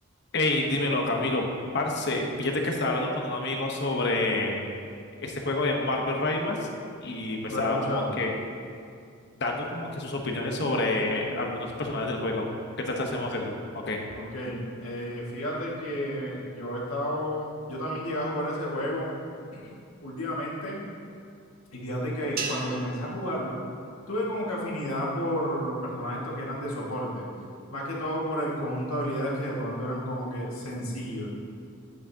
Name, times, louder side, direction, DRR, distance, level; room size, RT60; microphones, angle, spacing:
voice 1, 0.3-1.5 1.7-4.6 5.2-6.7 7.0-8.3 9.4-12.5 12.8-14.0, left 2 dB, 55° left, 1 dB, 1.1 m, -28 dB
voice 2, 7.5-8.1 14.2-19.1 19.5-19.7 20.0-20.8 21.7-23.6 24.1-27.3 27.7-31.3, equal, 90° left, -4 dB, 2.0 m, -31 dB
sound 1, 22.4-24.8, right 4 dB, 45° right, 0.8 m, -39 dB
11.0 x 8.6 x 2.9 m, 2.4 s
head